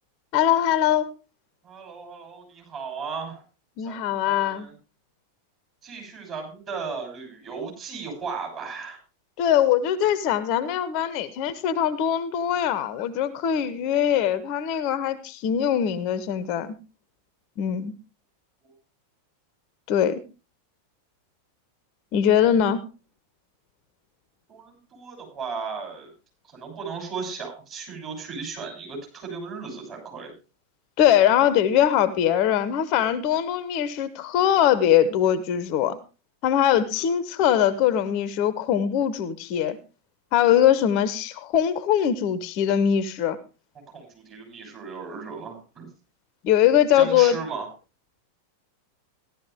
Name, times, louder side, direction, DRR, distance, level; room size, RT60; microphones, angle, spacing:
voice 1, 0.3-1.1 3.8-4.7 9.4-16.8 17.6-17.9 19.9-20.2 22.1-22.8 31.0-36.0 36.4-39.8 40.3-43.4 46.4-47.4, left 10 dB, 40° left, 16 dB, 0.8 m, -22 dB
voice 2, 1.6-3.4 3.8-4.7 5.8-9.0 24.5-26.1 26.5-30.3 36.9-37.1 43.9-45.9 46.9-47.7, right 5 dB, 30° right, 1 dB, 6.8 m, -36 dB
15.0 x 11.5 x 3.5 m, 0.31 s
figure-of-eight pair, 90°, 0 cm